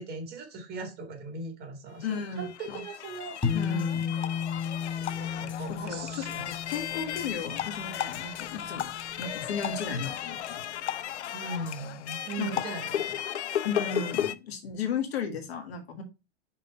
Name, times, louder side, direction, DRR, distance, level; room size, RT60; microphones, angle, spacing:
voice 1, 0.0-3.4 3.6-3.7 5.2-6.5 11.3-13.2 13.5-13.7, right 3 dB, 30° right, 4 dB, 2.1 m, -39 dB
sound 1, 2.0-14.4, left 11 dB, 80° left, 0.6 m, -35 dB
voice 2, 2.0-2.8 3.5-4.1 5.7-10.6 12.4-12.6 13.6-16.0, left 5 dB, 65° left, 5 dB, 1.7 m, -35 dB
sound 2, 3.4-10.0, left 7 dB, ahead, 1.9 m, -34 dB
5.8 x 3.8 x 4.3 m, 0.26 s
hypercardioid pair, 115°, 34 cm